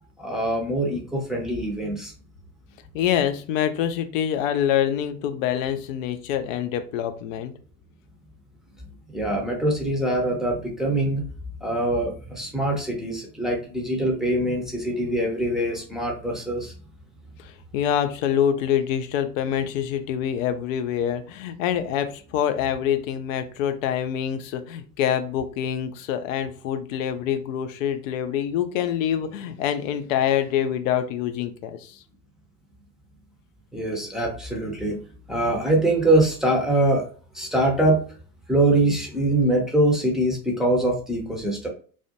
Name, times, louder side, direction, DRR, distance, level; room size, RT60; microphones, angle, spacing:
voice 1, 0.2-2.1 9.1-11.2 11.6-16.7 33.7-35.0 35.3-37.1 37.3-38.0 38.5-41.7, right 1 dB, ahead, -1 dB, 0.6 m, -23 dB
voice 2, 2.9-7.5 17.4-32.0, left 9 dB, 55° left, 9 dB, 0.5 m, -25 dB
2.4 x 2.1 x 2.8 m, 0.41 s
figure-of-eight pair, 70°, 47 cm